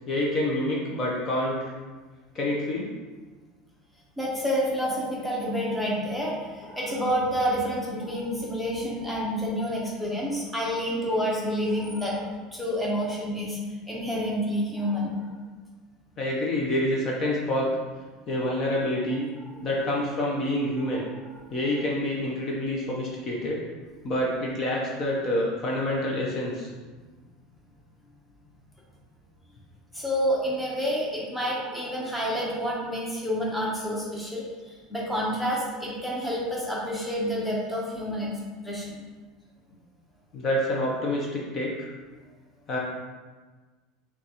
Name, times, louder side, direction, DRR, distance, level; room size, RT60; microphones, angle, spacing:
voice 1, 0.1-1.7 2.3-2.9 16.2-17.8 18.3-19.3 19.6-21.1 21.5-23.6 24.0-26.7 40.3-41.9 42.7-42.8, left 1 dB, 30° left, -3 dB, 0.6 m, -27 dB
voice 2, 4.2-13.6 13.9-15.2 19.5-19.7 20.9-21.3 29.9-38.3 38.6-38.9, equal, ahead, -5 dB, 0.8 m, -29 dB
5.7 x 2.3 x 2.9 m, 1.3 s
supercardioid pair, 150°, 0 cm